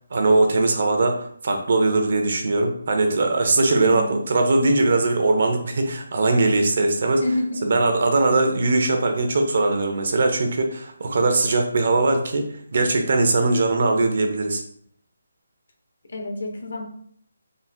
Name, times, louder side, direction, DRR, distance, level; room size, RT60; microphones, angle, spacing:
voice 1, 0.1-7.2 7.6-14.6, right 2 dB, 50° right, 4 dB, 0.7 m, -20 dB
voice 2, 3.8-4.2 7.2-7.7 16.0-16.8, left 1 dB, 70° left, 2 dB, 1.0 m, -28 dB
3.8 x 2.0 x 4.3 m, 0.63 s
hypercardioid pair, 170°, 0 cm